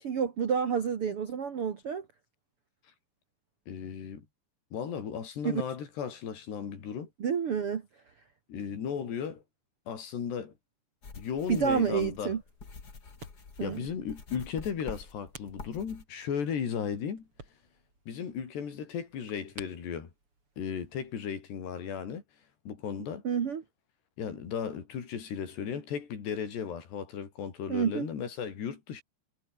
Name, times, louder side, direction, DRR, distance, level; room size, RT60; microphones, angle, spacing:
voice 1, 0.0-2.0 5.4-5.6 7.2-7.8 11.5-12.4 13.6-13.8 23.2-23.6 27.7-28.1, right 7 dB, 70° right, 1.3 m, -29 dB
voice 2, 3.7-4.2 4.7-7.1 8.5-9.4 9.9-10.5 11.2-12.3 13.6-17.3 18.1-20.1 20.6-22.2 22.7-23.2 24.2-29.0, left 7 dB, 65° left, 5.8 m, -35 dB
sound 1, 11.0-16.0, left 4 dB, 25° left, 2.4 m, -47 dB
sound 2, 12.5-21.2, right 3 dB, 30° right, 6.8 m, -55 dB
omnidirectional pair, 5.4 m